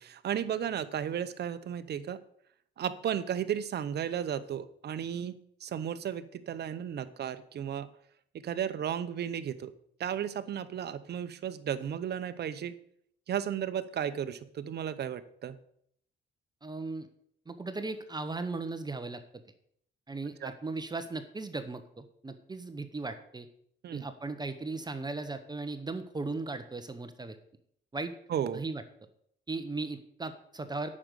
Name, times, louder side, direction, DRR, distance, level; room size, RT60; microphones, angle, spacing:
voice 1, 0.0-2.2 2.8-7.9 8.3-9.7 10.0-12.7 13.3-15.6 20.4-20.5 23.8-24.0 28.3-28.6, right 9 dB, 55° right, 13 dB, 0.8 m, -34 dB
voice 2, 16.6-17.1 17.5-19.2 20.1-23.5 23.9-27.4 27.9-28.1 28.5-28.8 29.5-31.0, right 3 dB, 20° right, 9 dB, 0.9 m, -37 dB
8.6 x 6.4 x 6.7 m, 0.67 s
cardioid pair, 90°, 20 cm